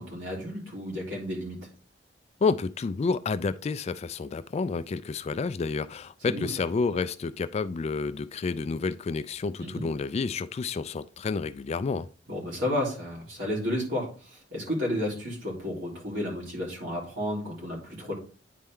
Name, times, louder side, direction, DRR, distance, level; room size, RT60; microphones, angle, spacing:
voice 1, 0.0-1.6 6.3-6.5 9.6-9.8 12.3-18.1, left 1 dB, 85° right, 3.6 m, -32 dB
voice 2, 2.4-12.1, left 4 dB, 35° left, 0.3 m, -30 dB
9.3 x 4.3 x 3.6 m
head